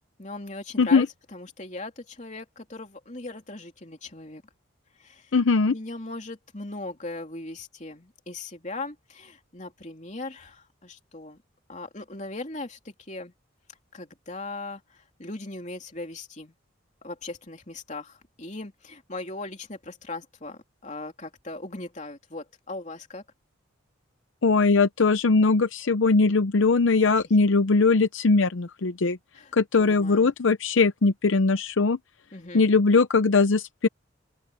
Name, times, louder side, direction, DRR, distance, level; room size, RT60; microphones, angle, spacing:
voice 1, 0.2-1.1 1.3-4.4 5.0-5.3 5.7-11.4 11.7-13.3 13.9-14.8 15.2-16.5 17.0-23.2 29.3-29.5 29.8-30.3 32.3-32.7, left 2 dB, 35° left, 3.2 m, -38 dB
voice 2, 5.3-5.7 24.4-29.2 29.5-32.0 32.5-33.9, left 4 dB, 70° left, 0.6 m, -20 dB
open air
head